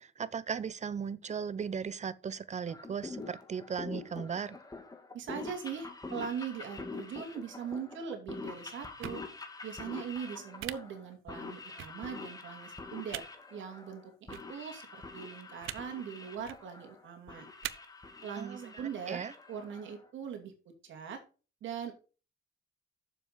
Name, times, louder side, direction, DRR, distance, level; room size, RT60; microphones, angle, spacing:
voice 1, 0.0-4.6 18.4-19.3, right 6 dB, 35° right, 0.8 m, -37 dB
sound 1, 2.7-20.1, left 3 dB, 20° left, 2.0 m, -46 dB
voice 2, 5.1-9.2 9.6-17.5 18.2-19.2 19.5-20.5 20.8-21.2 21.6-21.9, right 7 dB, 75° right, 2.6 m, -41 dB
sound 2, 9.0-9.2 10.6-10.7 11.8-11.9 13.1-13.2 14.3-14.4 15.6-15.8 16.4-16.6 17.6-17.7, right 15 dB, 90° right, 0.6 m, -39 dB
7.3 x 6.9 x 5.2 m
cardioid pair, 90°, 20 cm